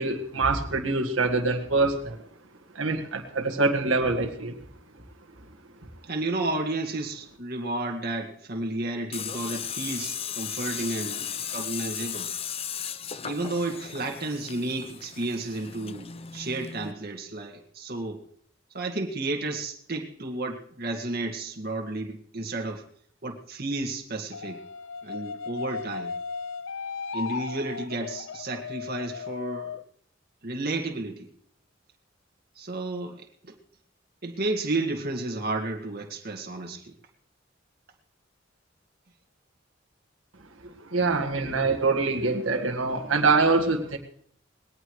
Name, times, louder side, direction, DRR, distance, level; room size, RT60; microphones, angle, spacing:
voice 1, 0.0-2.2 2.7-4.6 40.6-44.0, right 3 dB, 85° right, 1 dB, 1.8 m, -25 dB
voice 2, 6.0-12.3 13.2-18.2 18.7-22.8 23.2-24.6 25.0-26.1 27.1-29.8 30.4-31.3 32.6-33.5 34.2-36.9, right 2 dB, 50° right, 1 dB, 2.0 m, -32 dB
Tools, 9.1-16.9, left 8 dB, 30° left, 0.6 m, -36 dB
sound 1, 24.3-29.8, left 5 dB, 80° left, 0.6 m, -36 dB
21.0 x 18.5 x 3.2 m, 0.64 s
head